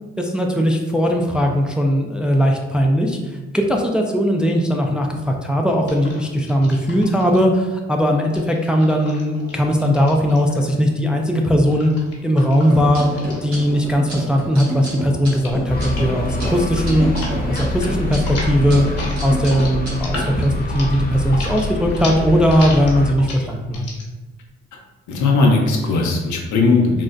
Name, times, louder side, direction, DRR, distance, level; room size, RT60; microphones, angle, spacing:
voice 1, 0.2-3.2 3.5-11.9 12.2-13.1 13.4-17.1 17.5-18.9 19.2-23.9, equal, 5° right, 2 dB, 0.3 m, -18 dB
sound 1, 5.9-7.4 8.2-10.7 11.7-14.2 14.4-14.8 15.2-15.6 15.9-16.1 16.4-17.3 17.6-17.9 18.2-24.0, left 2 dB, 55° left, 1.0 m, -34 dB
sound 2, 12.6-20.2, equal, 70° right, 1.4 m, -29 dB
sound 3, 15.7-23.1, left 3 dB, 30° left, 0.7 m, -26 dB
voice 2, 25.1-27.0, left 3 dB, 80° left, 1 dB, 0.7 m, -17 dB
3.8 x 2.1 x 2.4 m, 1.2 s
cardioid pair, 65°, 29 cm